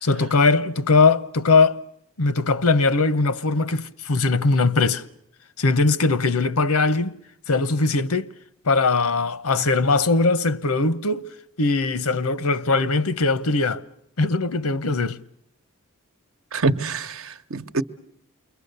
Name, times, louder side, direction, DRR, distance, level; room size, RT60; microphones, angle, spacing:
voice 1, 0.0-1.8 2.2-5.0 5.6-7.2 7.5-8.3 8.6-11.3 11.6-13.8 14.2-15.2, left 3 dB, 85° left, 0.9 m, -20 dB
voice 2, 16.5-17.8, right 3 dB, 70° right, 1.0 m, -25 dB
28.5 x 23.0 x 6.7 m
head